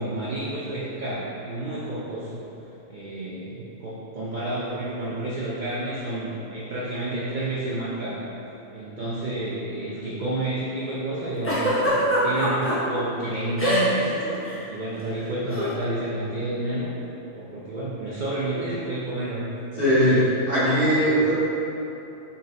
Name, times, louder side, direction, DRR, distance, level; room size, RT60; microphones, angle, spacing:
voice 1, 0.0-2.4 2.9-8.2 8.7-16.9 17.3-19.5 19.7-20.2 21.0-21.3, right 1 dB, 65° right, -8 dB, 0.4 m, -30 dB
Giggle, 11.4-12.7 13.6-14.1 14.3-14.6 15.5-15.7, equal, 15° left, 0.5 m, -23 dB
voice 2, 19.8-20.2 20.5-21.3, equal, 40° left, -14 dB, 1.8 m, -19 dB
4.3 x 4.0 x 2.5 m, 3.0 s
omnidirectional pair, 1.5 m